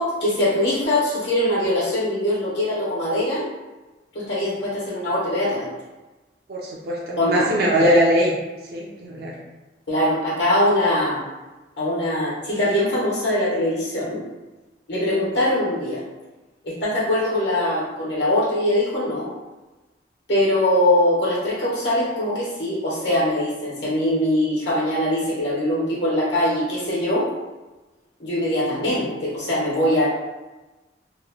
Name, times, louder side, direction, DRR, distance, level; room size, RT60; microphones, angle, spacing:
voice 1, 0.0-3.4 4.1-5.7 7.2-7.4 9.9-11.2 11.8-14.2 14.9-16.0 16.6-19.3 20.3-27.3 28.2-30.1, left 1 dB, 85° left, -6 dB, 1.2 m, -22 dB
voice 2, 6.5-8.3 8.7-9.4, equal, 60° right, -4 dB, 0.5 m, -20 dB
2.9 x 2.1 x 2.8 m, 1.1 s
head